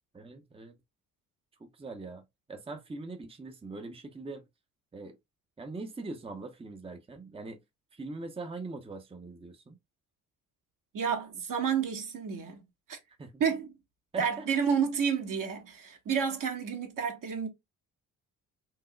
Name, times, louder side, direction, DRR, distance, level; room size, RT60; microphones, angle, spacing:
voice 1, 0.1-0.7 1.6-2.2 2.5-4.4 4.9-5.2 5.6-7.6 7.9-9.8 13.2-13.4 14.1-14.5, right 3 dB, 15° right, 0.8 m, -42 dB
voice 2, 10.9-12.6 12.9-13.0 13.4-13.7 14.2-17.5, right 7 dB, 55° right, 1.4 m, -30 dB
4.7 x 2.8 x 2.2 m
hypercardioid pair, 50°, 39 cm